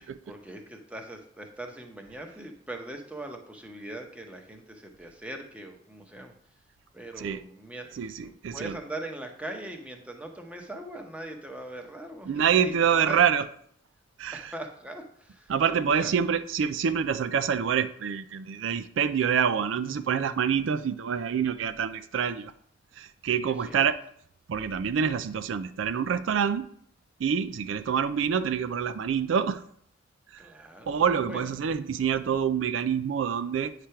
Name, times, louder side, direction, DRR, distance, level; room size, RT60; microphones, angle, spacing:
voice 1, 0.0-6.3 6.9-13.2 14.3-15.5 16.0-16.2 23.4-23.9 28.2-28.3 30.4-31.0 31.3-31.5, right 1 dB, 5° right, 0.9 m, -41 dB
voice 2, 8.0-8.8 12.3-13.5 14.2-14.5 15.5-22.5 23.0-24.0 24.5-26.7 27.2-29.6 30.3-30.5 30.9-33.7, right 7 dB, 80° right, 0.4 m, -26 dB
8.8 x 3.3 x 5.7 m
head